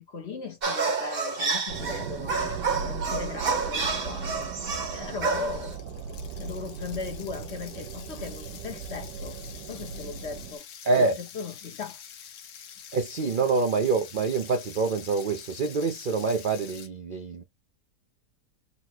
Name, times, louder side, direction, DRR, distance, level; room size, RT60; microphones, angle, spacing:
voice 1, 0.0-4.5 4.9-5.8 6.4-9.4 9.6-10.6 11.0-12.0 13.2-13.3, left 4 dB, 45° left, 1.1 m, -38 dB
sound 1, 0.6-5.7, right 4 dB, 40° right, 1.1 m, -29 dB
sound 2, 1.7-10.6, right 6 dB, 85° right, 1.2 m, -38 dB
sound 3, 3.7-3.8 4.1-16.9, left 8 dB, 70° left, 1.2 m, -47 dB
voice 2, 10.8-11.2 12.9-17.4, right 4 dB, 55° right, 0.5 m, -26 dB
4.2 x 2.2 x 4.3 m
omnidirectional pair, 1.7 m